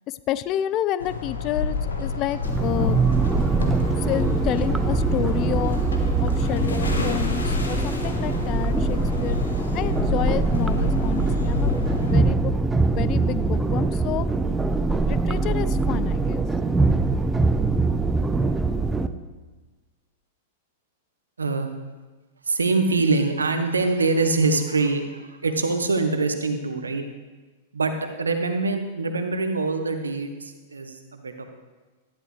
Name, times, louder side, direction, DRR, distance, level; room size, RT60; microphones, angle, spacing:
voice 1, 0.1-3.0 4.0-5.8 6.2-9.4 9.7-14.3 15.1-16.4, left 13 dB, 40° left, 16 dB, 0.3 m, -30 dB
sound 1, 1.0-12.2, left 3 dB, 85° left, 1.5 m, -28 dB
sound 2, 2.4-19.1, right 3 dB, 10° right, 0.5 m, -23 dB
voice 2, 21.4-21.7 22.4-27.0 27.7-31.4, right 3 dB, 90° right, 7 dB, 1.0 m, -24 dB
12.0 x 11.0 x 3.3 m, 1.3 s
hypercardioid pair, 105°, 0 cm